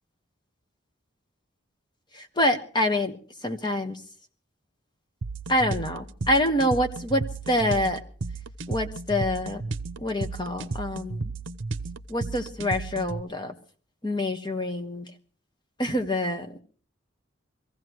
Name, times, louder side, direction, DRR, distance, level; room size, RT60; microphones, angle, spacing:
voice 1, 2.1-3.2 3.4-4.0 5.5-8.0 8.7-9.6 10.0-11.3 12.1-13.5 14.0-15.1 15.8-16.6, left 1 dB, 20° left, 7 dB, 1.3 m, -26 dB
sound 1, 5.2-13.2, right 3 dB, 70° right, 0.8 m, -34 dB
24.5 x 15.5 x 3.1 m, 0.42 s
head